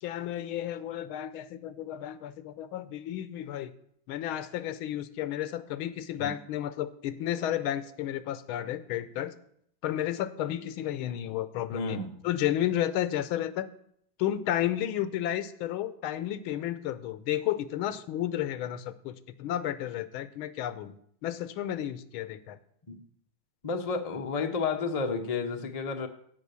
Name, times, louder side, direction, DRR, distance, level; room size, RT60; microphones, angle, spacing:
voice 1, 0.0-3.7 4.1-9.3 9.8-12.0 12.2-13.7 14.2-20.9 21.2-22.6, left 12 dB, 80° left, 1.5 m, -32 dB
voice 2, 11.7-12.1 22.9-23.0 23.6-26.1, left 4 dB, 60° left, 0.4 m, -31 dB
15.5 x 5.6 x 6.9 m
omnidirectional pair, 2.3 m